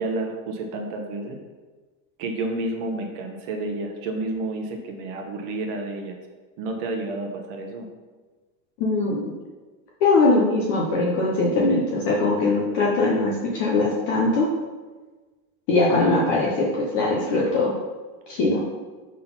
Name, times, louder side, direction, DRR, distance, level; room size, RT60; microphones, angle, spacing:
voice 1, 0.0-1.4 2.2-6.2 6.6-7.9, right 2 dB, 35° right, 3 dB, 0.9 m, -30 dB
voice 2, 8.8-9.3 10.0-14.5 15.7-17.7 18.3-18.6, left 2 dB, 25° left, -3 dB, 0.4 m, -21 dB
5.8 x 3.8 x 5.6 m, 1.3 s
supercardioid pair, 175°, 45 cm